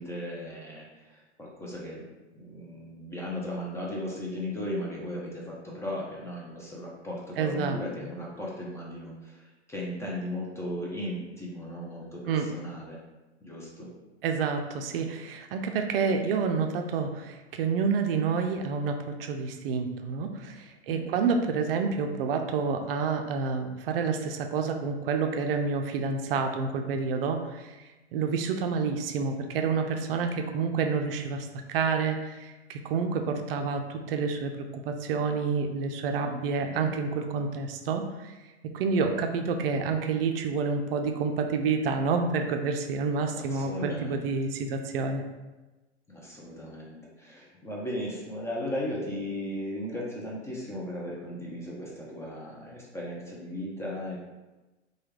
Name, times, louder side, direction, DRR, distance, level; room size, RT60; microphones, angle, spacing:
voice 1, 0.0-2.0 2.3-13.0 13.4-13.9 20.9-21.2 36.6-36.9 43.4-44.3 46.1-54.2, left 1 dB, 10° left, -5 dB, 0.4 m, -36 dB
voice 2, 7.4-7.8 12.3-12.5 14.2-27.7 28.1-38.3 38.7-45.2, right 5 dB, 55° right, 5 dB, 0.4 m, -29 dB
3.3 x 2.2 x 3.1 m, 1.1 s
hypercardioid pair, 100°, 34 cm